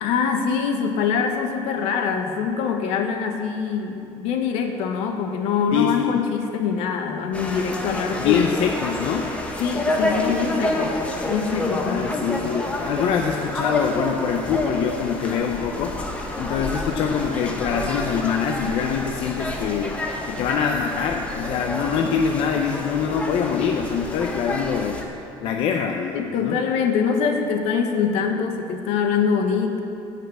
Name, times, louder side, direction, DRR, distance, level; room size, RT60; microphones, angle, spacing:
voice 1, 0.0-8.4 9.6-12.0 26.1-29.8, left 6 dB, 75° left, 5 dB, 1.1 m, -24 dB
voice 2, 5.7-6.2 8.2-9.3 11.6-16.0 16.4-20.0 20.2-26.6, left 7 dB, 60° left, 3 dB, 0.6 m, -24 dB
sound 1, 7.3-25.0, left 1 dB, 10° left, 0.8 m, -29 dB
9.3 x 5.8 x 8.4 m, 2.7 s
cardioid pair, 170°, 11 cm